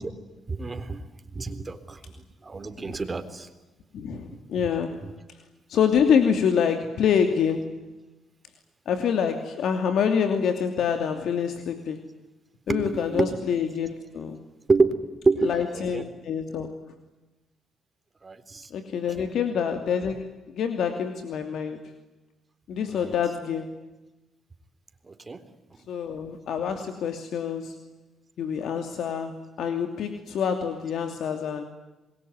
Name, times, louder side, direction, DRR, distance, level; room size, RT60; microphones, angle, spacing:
voice 1, 0.5-1.0 1.3-3.5 4.1-4.7 5.0-5.1 12.7-13.4 14.7-16.1 18.2-18.7 19.2-19.3 22.9-23.1 25.0-25.4, right 3 dB, 25° right, 9 dB, 3.8 m, -28 dB
voice 2, 3.9-5.0 5.7-7.9 8.9-12.0 12.7-14.4 15.4-16.8 18.7-21.9 22.7-23.8 25.9-27.8 28.4-31.6, left 7 dB, 70° left, 7 dB, 2.8 m, -26 dB
26.5 x 22.0 x 9.6 m, 1.1 s
cardioid pair, 90°, 0 cm